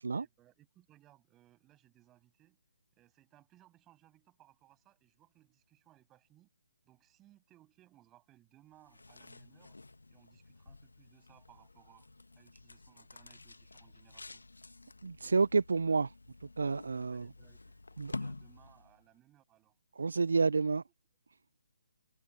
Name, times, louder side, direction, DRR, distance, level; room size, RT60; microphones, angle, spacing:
voice 1, 0.1-2.6 3.0-6.5 6.8-9.8 10.1-14.4 17.1-19.7, right 14 dB, 15° right, 7.1 m, -65 dB
sound 1, 8.7-19.1, left 2 dB, 80° left, 1.4 m, -49 dB
voice 2, 15.0-16.1 16.6-17.2 18.0-18.1 20.0-20.8, right 4 dB, 70° right, 0.4 m, -29 dB
figure-of-eight pair, 140°, 0 cm